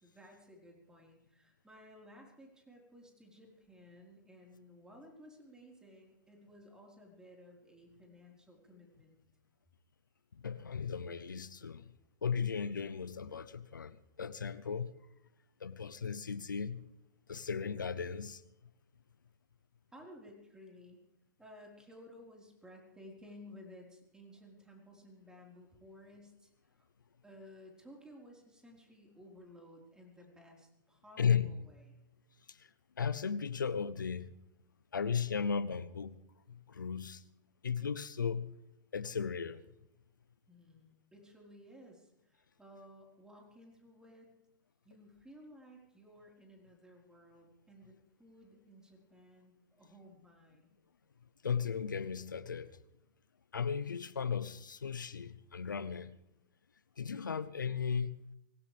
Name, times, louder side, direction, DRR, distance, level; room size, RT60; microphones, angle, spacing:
voice 1, 0.0-9.2 19.9-21.0 21.4-26.9 27.2-31.9 40.5-44.3 44.8-50.7, left 1 dB, 5° right, 4.4 m, -56 dB
voice 2, 10.4-11.9 12.2-14.9 15.6-16.9 17.3-18.4 31.2-31.5 32.5-32.7 33.0-34.3 34.9-36.2 36.5-37.2 37.6-38.6 38.9-39.6 51.4-52.8 53.5-56.2 57.0-58.2, left 6 dB, 90° left, 0.8 m, -36 dB
24.5 x 17.0 x 3.5 m
hypercardioid pair, 115°, 10 cm